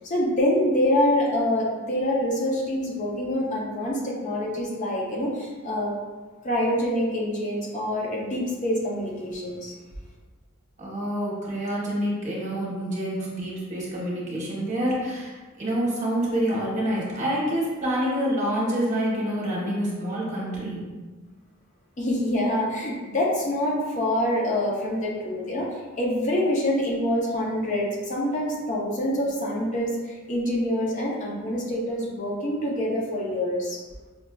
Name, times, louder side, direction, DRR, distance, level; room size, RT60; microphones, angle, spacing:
voice 1, 0.0-5.9 6.4-9.7 22.0-33.8, left 1 dB, 35° left, -3 dB, 0.5 m, -26 dB
voice 2, 10.8-20.8, equal, 35° right, -5 dB, 0.9 m, -27 dB
5.0 x 2.3 x 2.2 m, 1.3 s
head